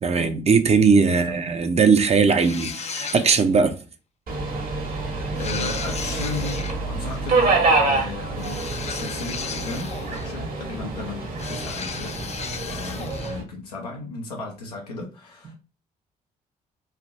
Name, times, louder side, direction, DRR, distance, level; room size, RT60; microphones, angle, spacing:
voice 1, 0.0-3.8 15.5-15.6, right 5 dB, 35° right, 0.6 m, -19 dB
voice 2, 1.0-1.4 5.1-12.2 12.6-15.6, left 3 dB, 90° left, 0.7 m, -35 dB
sound 1, 2.4-3.6 5.4-6.8 8.4-10.4 11.4-13.4, left 6 dB, 35° left, 0.4 m, -35 dB
Subway metro underground, 4.3-13.4, right 3 dB, 50° right, 1.2 m, -26 dB
3.3 x 2.6 x 2.6 m
hypercardioid pair, 40°, 19 cm